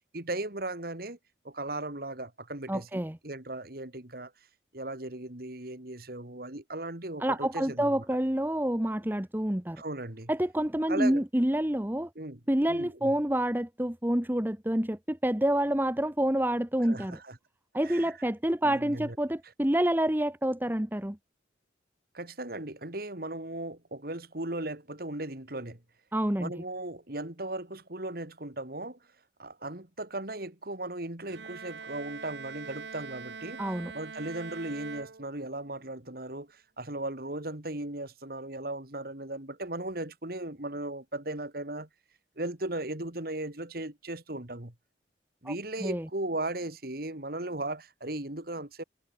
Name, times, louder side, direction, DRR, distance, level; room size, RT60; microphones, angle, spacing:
voice 1, 0.1-1.2 1.4-4.3 4.7-8.0 9.8-10.3 10.9-11.2 12.2-12.4 12.7-13.1 16.9-17.4 17.8-18.1 18.6-19.2 22.1-25.8 26.4-29.0 29.4-33.6 33.9-41.9 42.4-44.7 45.4-48.8, right 2 dB, 55° right, 2.6 m, -37 dB
voice 2, 2.7-3.2 7.2-9.8 10.3-12.1 12.5-17.2 17.7-21.2 26.1-26.5 33.6-33.9 45.4-45.5 45.8-46.1, right 1 dB, 10° right, 1.1 m, -28 dB
Bowed string instrument, 31.3-35.7, right 5 dB, 75° right, 1.1 m, -43 dB
head